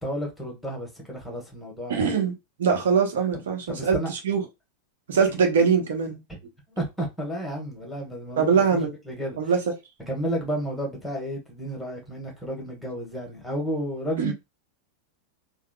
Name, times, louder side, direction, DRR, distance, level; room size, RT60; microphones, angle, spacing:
voice 1, 0.0-2.1 3.3-3.4 3.7-4.1 6.4-6.5 6.8-8.5 9.1-9.5 10.1-14.3, equal, 5° left, 1.2 m, -32 dB
voice 2, 1.9-2.3 2.6-4.4 5.1-6.2 8.4-8.9 9.4-9.6 14.2-14.3, right 6 dB, 60° right, 0.9 m, -22 dB
3.6 x 2.0 x 2.3 m
figure-of-eight pair, 90°, 0 cm